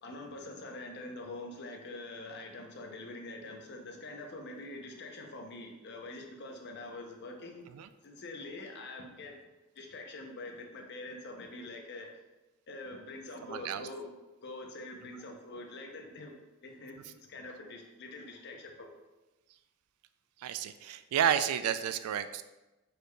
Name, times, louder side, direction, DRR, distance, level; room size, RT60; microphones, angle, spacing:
voice 1, 0.0-7.7 8.0-9.4 9.7-12.1 12.7-14.1 14.4-19.0, left 2 dB, 50° left, 3 dB, 0.6 m, -45 dB
voice 2, 13.5-13.9 20.4-22.4, right 9 dB, 80° right, 14 dB, 0.3 m, -31 dB
4.9 x 4.7 x 2.2 m, 1.1 s
head